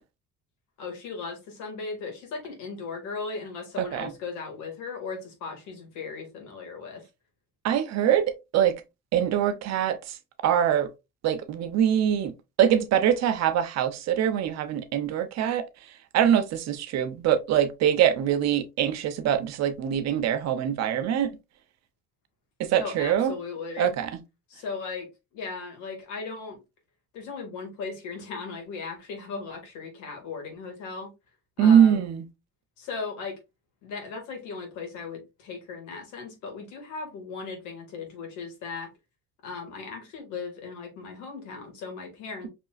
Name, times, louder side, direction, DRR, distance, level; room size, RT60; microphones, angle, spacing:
voice 1, 0.8-7.0 22.8-23.9 24.5-25.1 25.3-26.6 27.1-31.1 31.6-32.0 32.8-33.3 33.8-38.9 39.4-42.5, left 4 dB, 80° left, 2.0 m, -37 dB
voice 2, 3.8-4.1 7.6-8.7 9.1-10.0 10.4-10.9 11.2-12.3 12.6-15.6 16.1-21.3 22.6-23.3 23.8-24.1 31.6-32.2, right 9 dB, 65° right, 0.8 m, -23 dB
5.3 x 3.1 x 2.4 m
cardioid pair, 95°, 29 cm